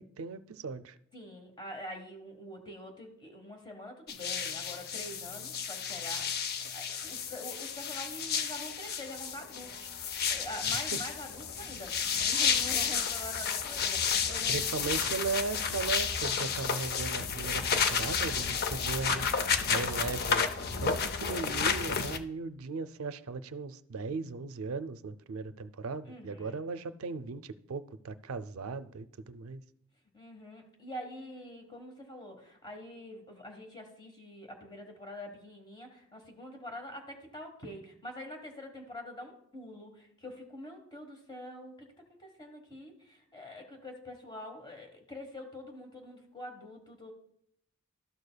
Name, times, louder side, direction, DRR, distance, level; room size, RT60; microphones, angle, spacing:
voice 1, 0.0-1.0 10.9-11.0 14.5-20.5 20.8-29.6, right 4 dB, 85° right, 13 dB, 0.4 m, -37 dB
voice 2, 1.1-9.9 10.3-12.0 12.3-14.8 26.0-26.6 30.1-47.1, left 1 dB, 20° left, 3 dB, 1.2 m, -45 dB
sound 1, 4.1-22.2, left 6 dB, 50° left, 0.5 m, -31 dB
12.5 x 6.6 x 2.2 m, 0.71 s
head